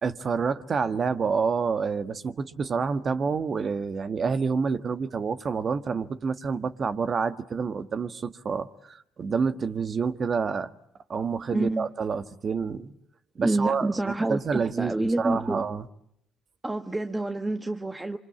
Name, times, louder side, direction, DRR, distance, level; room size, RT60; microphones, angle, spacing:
voice 1, 0.0-10.7 11.1-12.9 13.3-13.9 14.3-15.9, right 5 dB, 45° right, 1.5 m, -28 dB
voice 2, 11.5-11.9 13.4-15.6 16.6-18.2, right 2 dB, 20° right, 1.5 m, -28 dB
26.5 x 25.5 x 8.7 m
supercardioid pair, 65°, 0 cm